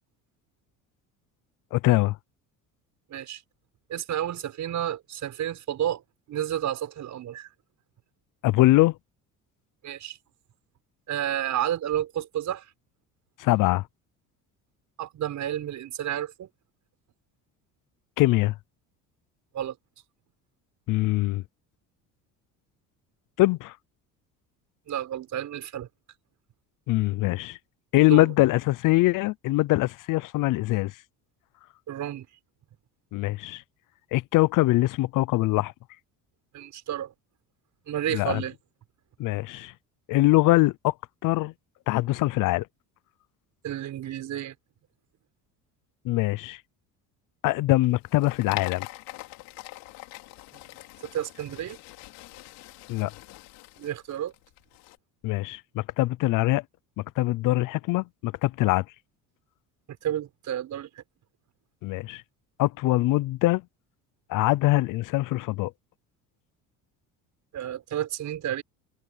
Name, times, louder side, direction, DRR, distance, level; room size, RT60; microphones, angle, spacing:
voice 1, 1.7-2.2 8.4-9.0 13.4-13.8 18.2-18.5 20.9-21.4 23.4-23.8 26.9-27.6 27.9-30.9 33.1-33.6 34.1-35.7 38.1-38.4 39.2-39.7 40.1-40.9 41.2-41.5 41.9-42.7 46.0-46.6 47.4-48.9 52.9-53.1 55.2-56.6 57.0-58.8 61.8-62.2 62.6-63.6 64.3-65.7, left 18 dB, 65° left, 0.7 m, -23 dB
voice 2, 3.1-3.4 3.9-6.0 6.3-7.5 9.8-10.2 11.1-12.7 15.0-16.5 19.5-19.7 24.9-25.9 28.1-28.3 31.9-32.3 36.5-37.1 37.9-38.5 43.6-44.5 51.1-51.8 53.8-54.3 60.0-61.0 67.5-68.6, right 11 dB, 55° right, 6.6 m, -31 dB
sound 1, 47.8-55.0, left 20 dB, 85° left, 4.1 m, -44 dB
supercardioid pair, 95°, 34 cm